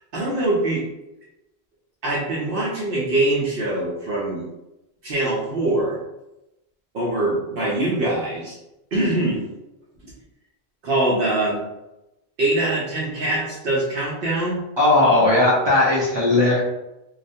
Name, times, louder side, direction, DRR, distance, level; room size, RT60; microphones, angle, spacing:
voice 1, 0.1-0.8 2.0-4.5 5.0-6.0 6.9-8.6 8.9-9.4 10.8-11.6 12.4-14.6, right 2 dB, 65° right, -6 dB, 0.7 m, -23 dB
voice 2, 14.8-16.6, left 2 dB, 35° right, -5 dB, 0.5 m, -17 dB
2.3 x 2.1 x 2.6 m, 0.93 s
omnidirectional pair, 1.1 m